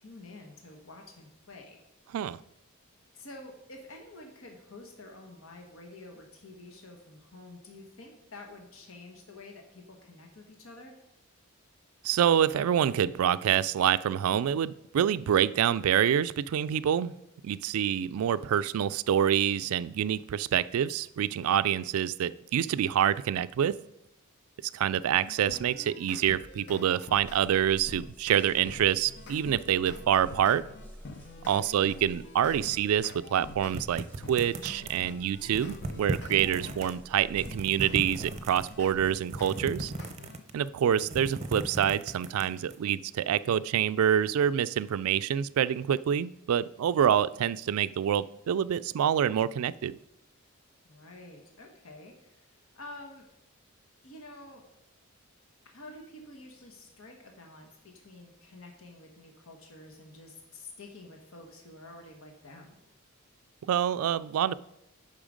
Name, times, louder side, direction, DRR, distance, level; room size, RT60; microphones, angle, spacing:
voice 1, 0.0-1.8 3.1-11.0 31.5-31.9 36.5-36.9 50.8-53.2 54.0-54.6 55.7-62.8, left 2 dB, 70° left, 2 dB, 1.3 m, -49 dB
voice 2, 12.0-17.1 17.4-23.8 24.7-30.6 31.5-39.9 40.5-50.0 63.6-64.5, right 9 dB, 80° right, 16 dB, 0.3 m, -26 dB
sound 1, 25.2-27.5 27.9-33.8 34.2-37.0 37.4-40.4, left 3 dB, 55° left, 0.7 m, -47 dB
sound 2, 27.1-39.1, equal, 10° left, 1.7 m, -51 dB
sound 3, 33.7-35.1 35.5-36.9 37.3-38.7 39.2-40.6 40.9-42.8, right 2 dB, 30° right, 0.7 m, -36 dB
8.8 x 5.7 x 5.1 m, 0.84 s
head